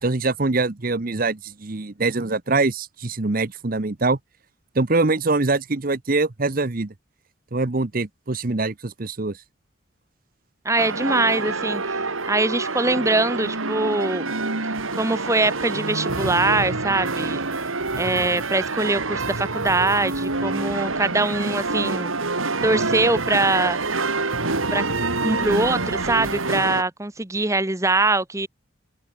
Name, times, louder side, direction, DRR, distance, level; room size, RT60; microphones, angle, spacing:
voice 1, 0.0-4.2 4.7-6.9 7.5-9.4, right 3 dB, 45° right, 0.9 m, -23 dB
voice 2, 10.6-12.0 12.2-14.3 15.0-17.4 18.0-22.1 22.6-23.8 24.7-24.8 25.2-28.5, right 2 dB, 15° right, 1.0 m, -22 dB
sound 1, 10.8-26.8, right 3 dB, 90° right, 3.2 m, -26 dB
head